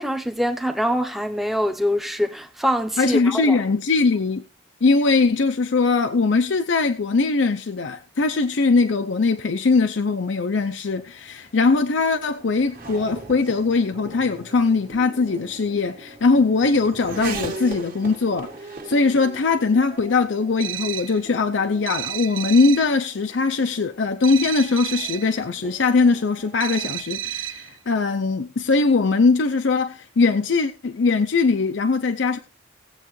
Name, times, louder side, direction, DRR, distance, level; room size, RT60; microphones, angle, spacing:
voice 1, 0.0-3.6, equal, ahead, 0.7 m, -24 dB
voice 2, 3.0-4.4 4.8-32.4, left 4 dB, 70° left, 0.6 m, -21 dB
Race car auto racing / Accelerating revving vroom, 10.8-27.0, right 3 dB, 45° right, 1.5 m, -40 dB
sound 1, 20.6-21.2 21.9-22.9 24.2-25.3 26.6-27.7, right 12 dB, 90° right, 0.8 m, -31 dB
18.5 x 7.8 x 3.1 m
head